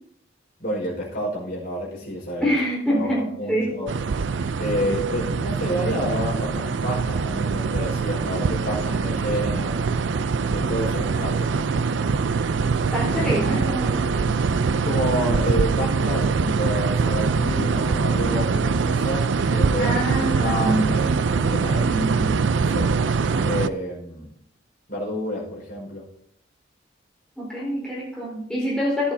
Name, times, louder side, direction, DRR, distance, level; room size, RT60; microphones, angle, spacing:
voice 1, 0.6-2.5 3.0-3.1 3.4-3.9 4.6-9.9 10.5-11.5 14.7-22.0 22.6-23.0 23.4-24.3 24.9-26.0, equal, 50° left, -3 dB, 4.8 m, -29 dB
voice 2, 2.4-3.8 12.9-14.2 19.8-20.9 21.8-22.4 27.4-29.1, equal, 5° left, -6 dB, 4.3 m, -25 dB
sound 1, 3.9-23.7, right 5 dB, 75° right, 0.5 m, -23 dB
14.0 x 11.0 x 2.8 m, 0.68 s
head